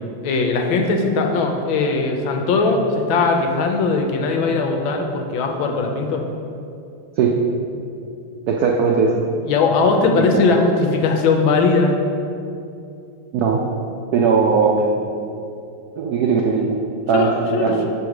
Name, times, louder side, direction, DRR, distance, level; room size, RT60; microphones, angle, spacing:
voice 1, 0.2-6.2 9.5-11.9 17.1-17.9, left 4 dB, 80° left, 3 dB, 1.4 m, -19 dB
voice 2, 8.5-9.2 10.2-10.4 13.3-13.7 14.1-15.1 16.0-16.8 17.1-17.3 17.6-17.9, right 5 dB, 85° right, 0 dB, 0.8 m, -18 dB
6.3 x 3.5 x 5.8 m, 2.6 s
omnidirectional pair, 2.2 m